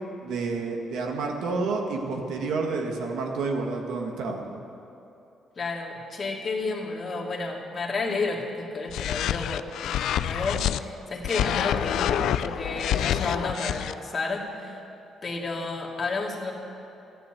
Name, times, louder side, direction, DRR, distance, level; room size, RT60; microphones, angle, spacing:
voice 1, 0.2-4.4, right 3 dB, 85° right, 2 dB, 1.8 m, -29 dB
voice 2, 5.6-14.8 15.2-16.5, left 3 dB, 35° left, -1 dB, 2.3 m, -31 dB
sound 1, 8.9-10.8 11.2-13.9, left 11 dB, 80° left, 0.4 m, -27 dB
13.5 x 11.0 x 7.9 m, 2.9 s
cardioid pair, 115°, 0 cm